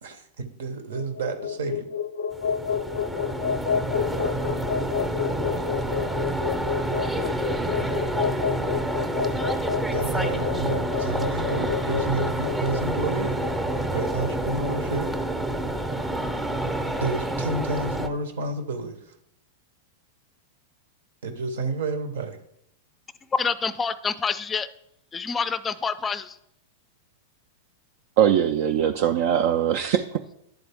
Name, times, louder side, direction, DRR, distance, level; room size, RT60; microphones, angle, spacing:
voice 1, 0.0-1.9 9.9-13.3 13.9-15.1 17.0-19.1 21.2-22.4, right 3 dB, 80° right, 0.9 m, -30 dB
sound 1, 0.8-15.1, left 8 dB, 80° left, 0.4 m, -30 dB
sound 2, 2.3-18.1, right 1 dB, 10° right, 0.7 m, -28 dB
voice 2, 23.3-24.7 25.1-26.4, left 5 dB, 20° left, 0.4 m, -27 dB
voice 3, 28.2-30.0, right 9 dB, 60° right, 0.4 m, -21 dB
10.5 x 3.9 x 3.5 m
hypercardioid pair, 120°, 0 cm